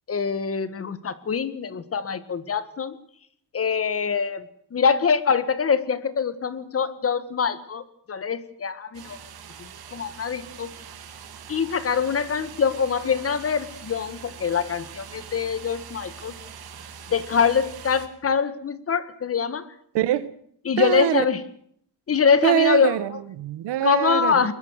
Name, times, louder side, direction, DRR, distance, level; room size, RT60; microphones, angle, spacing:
voice 1, 0.1-3.0 3.5-4.5 4.7-9.2 9.6-10.7 11.5-16.3 17.1-19.7 20.6-21.4 22.1-23.0 23.8-24.5, left 6 dB, 35° left, 1.7 m, -24 dB
sound 1, 8.9-18.1, right 7 dB, 65° right, 3.2 m, -43 dB
voice 2, 19.9-20.3 20.8-21.2 22.4-24.5, right 11 dB, 90° right, 1.6 m, -23 dB
21.5 x 21.5 x 6.5 m
cardioid pair, 160°, 40 cm